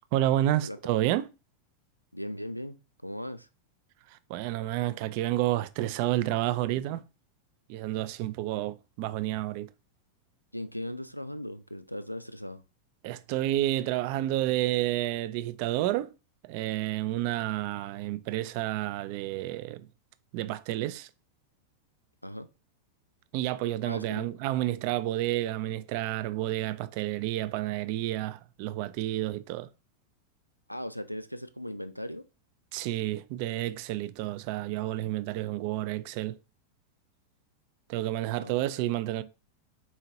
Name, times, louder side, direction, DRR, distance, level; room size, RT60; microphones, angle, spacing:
voice 1, 0.1-1.3 4.1-7.0 7.7-9.7 13.0-16.1 16.4-19.9 20.3-21.1 23.3-29.7 32.7-36.4 37.9-39.2, right 14 dB, 45° right, 0.3 m, -30 dB
voice 2, 2.1-2.8 3.0-3.5 8.5-8.6 10.5-12.6 22.2-22.5 23.8-24.2 30.7-32.2 38.4-38.5, equal, 90° left, 0.3 m, -38 dB
4.2 x 2.8 x 2.7 m
figure-of-eight pair, 90°, 0 cm